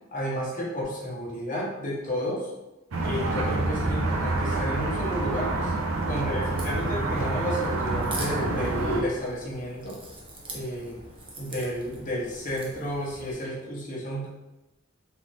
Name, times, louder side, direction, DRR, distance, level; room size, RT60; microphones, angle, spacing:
voice 1, 0.1-2.5 3.0-5.7 6.1-10.0 10.5-11.0 11.4-14.3, equal, 40° left, -4 dB, 0.9 m, -31 dB
sound 1, 2.9-9.0, right 2 dB, 80° right, 0.5 m, -27 dB
Crack, 6.4-13.3, right 2 dB, 25° right, 0.6 m, -43 dB
3.4 x 2.6 x 3.1 m, 0.99 s
head